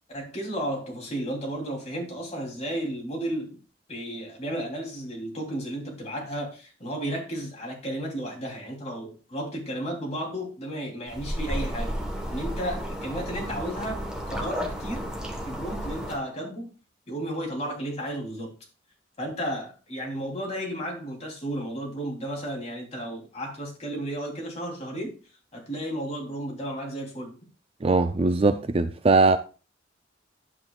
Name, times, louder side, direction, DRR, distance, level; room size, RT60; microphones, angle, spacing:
voice 1, 0.1-3.6 3.9-12.0 12.3-15.1 15.5-16.7 17.1-18.5 19.2-25.2 25.5-27.3, right 1 dB, 35° left, 3.2 m, -33 dB
sound 1, 11.1-16.2, equal, 5° right, 1.3 m, -32 dB
voice 2, 27.8-29.4, right 3 dB, 30° right, 0.5 m, -21 dB
11.0 x 7.9 x 2.4 m
head